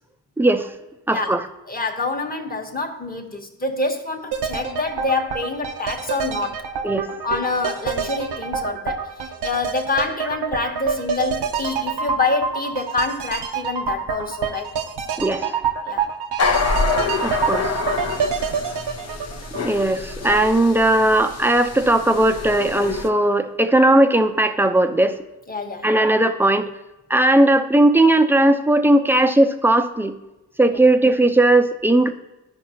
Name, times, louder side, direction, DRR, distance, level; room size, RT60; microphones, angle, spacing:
voice 1, 0.4-0.7 1.1-1.4 6.8-7.1 15.2-15.6 17.2-17.8 19.6-25.2 25.8-26.7 27.1-30.2 30.6-32.2, right 1 dB, 5° right, 7 dB, 0.7 m, -17 dB
voice 2, 1.1-6.6 7.2-14.7 15.8-16.1 25.5-25.9 30.7-30.8, left 3 dB, 20° left, 3 dB, 1.4 m, -26 dB
sound 1, 4.3-20.3 20.5-20.6, right 6 dB, 75° right, 1.0 m, -27 dB
sound 2, 16.4-23.1, left 4 dB, 40° left, 0.9 m, -26 dB
13.0 x 5.2 x 2.9 m, 0.98 s
supercardioid pair, 55°, 40 cm